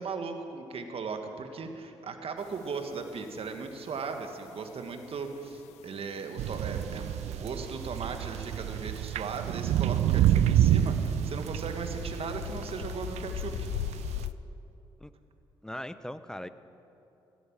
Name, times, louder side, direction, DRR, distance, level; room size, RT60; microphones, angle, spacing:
voice 1, 0.0-13.7, right 4 dB, 60° right, 6 dB, 1.8 m, -37 dB
sound 1, 2.4-14.3, left 13 dB, 80° left, 0.4 m, -43 dB
sound 2, 6.4-14.3, right 11 dB, 75° right, 0.5 m, -28 dB
voice 2, 15.6-16.5, left 1 dB, 5° left, 13 dB, 0.9 m, -39 dB
16.0 x 12.0 x 7.4 m, 2.9 s
hypercardioid pair, 45°, 11 cm